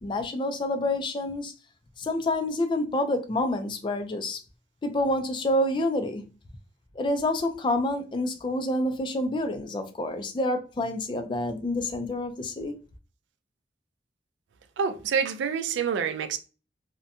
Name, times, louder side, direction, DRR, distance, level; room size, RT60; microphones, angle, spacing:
voice 1, 0.0-1.5 2.0-4.4 4.8-6.2 7.0-12.7, left 1 dB, 25° left, 0.3 m, -28 dB
voice 2, 14.8-16.4, right 6 dB, 80° right, 0.3 m, -27 dB
2.6 x 2.1 x 2.6 m
head